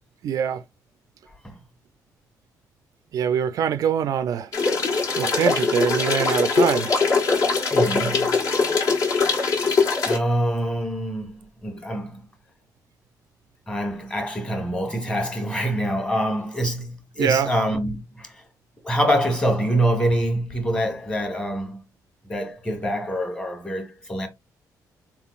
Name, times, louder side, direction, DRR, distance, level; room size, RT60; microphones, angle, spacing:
voice 1, 0.2-0.6 3.1-4.5 5.2-7.0 17.2-17.5, right 8 dB, 60° right, 0.4 m, -23 dB
sound 1, 4.5-10.2, left 4 dB, 55° left, 1.5 m, -22 dB
voice 2, 7.7-8.4 10.0-12.2 13.7-18.4 18.8-21.8 22.3-24.3, right 1 dB, 15° left, 1.2 m, -25 dB
4.2 x 3.8 x 2.3 m
cardioid pair, 145°, 7 cm